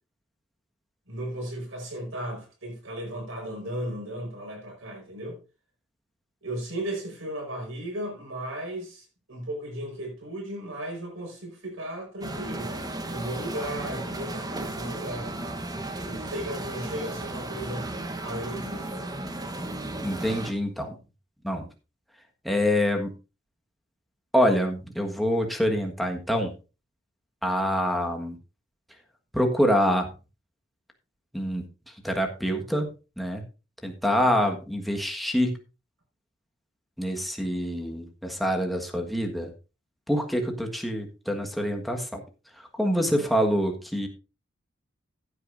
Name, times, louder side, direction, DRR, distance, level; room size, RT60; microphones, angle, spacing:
voice 1, 1.1-5.4 6.4-12.7 13.1-15.4 16.0-17.9 18.2-18.9 34.0-34.4 43.0-43.4, right 1 dB, 75° right, 4.8 m, -35 dB
sound 1, 12.2-20.5, right 2 dB, 20° right, 1.0 m, -34 dB
voice 2, 20.0-20.9 21.4-21.7 22.4-23.1 24.3-26.5 27.4-28.3 29.3-30.1 31.3-31.6 32.0-32.9 33.2-33.4 33.8-35.5 37.0-39.5 40.1-42.2 42.7-44.1, equal, ahead, 1.5 m, -26 dB
15.0 x 8.6 x 2.6 m
head